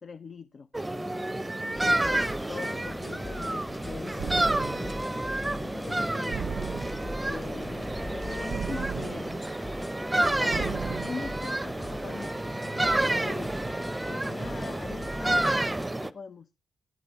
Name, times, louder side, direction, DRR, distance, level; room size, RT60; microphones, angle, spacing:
voice 1, 0.0-1.0 1.8-6.4 7.2-9.4 10.2-12.4 12.6-13.5 14.1-15.6 16.0-16.5, left 5 dB, 50° left, 0.6 m, -42 dB
sound 1, 0.7-16.1, right 1 dB, 10° right, 0.7 m, -30 dB
sound 2, 1.7-15.9, left 1 dB, 10° left, 1.0 m, -42 dB
sound 3, 4.2-5.1 6.3-7.3 8.5-9.5 10.5-11.4, right 7 dB, 65° right, 0.6 m, -36 dB
10.5 x 8.5 x 5.5 m
cardioid pair, 105°, 0 cm